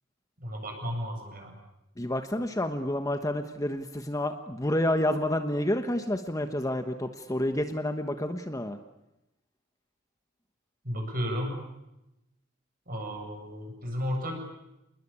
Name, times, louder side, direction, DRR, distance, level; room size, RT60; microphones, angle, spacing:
voice 1, 0.4-1.5 10.8-11.6 12.9-14.4, equal, 45° right, 3 dB, 7.7 m, -33 dB
voice 2, 2.0-8.8, left 1 dB, 15° left, 7 dB, 1.2 m, -29 dB
28.5 x 21.0 x 8.7 m, 0.91 s
head